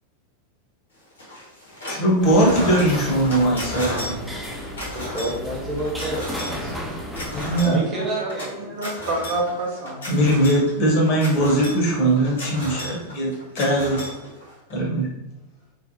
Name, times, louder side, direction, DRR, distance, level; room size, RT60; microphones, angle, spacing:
sound 1, 1.2-2.1 2.3-14.7, left 1 dB, 75° left, 1.1 m, -34 dB
voice 1, 1.8-4.2 7.4-7.8 10.1-14.0 14.7-15.1, right 1 dB, 40° left, -2 dB, 0.8 m, -20 dB
sound 2, 2.2-7.6, equal, 5° right, 0.4 m, -33 dB
voice 2, 4.8-6.8 7.6-8.7, right 1 dB, 25° right, -2 dB, 0.9 m, -29 dB
voice 3, 7.9-10.0, right 2 dB, 55° right, -1 dB, 0.6 m, -28 dB
3.1 x 2.0 x 2.6 m, 0.92 s
figure-of-eight pair, 90°, 0 cm